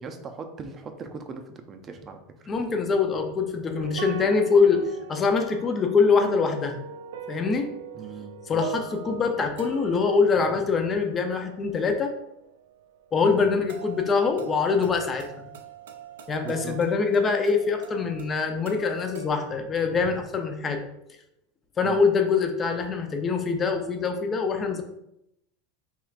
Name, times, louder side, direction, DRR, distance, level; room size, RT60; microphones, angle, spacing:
voice 1, 0.0-2.2 7.9-8.6 13.3-13.5 16.4-16.8 21.8-22.0, right 4 dB, 30° right, 6 dB, 0.5 m, -39 dB
voice 2, 2.5-6.8 7.3-7.7 8.5-12.1 13.1-15.5 16.3-20.8 21.8-24.8, left 5 dB, 25° left, 5 dB, 0.5 m, -24 dB
sound 1, 3.8-19.3, right 4 dB, 90° right, 0.4 m, -41 dB
4.5 x 3.1 x 2.4 m, 0.83 s
supercardioid pair, 130°, 0 cm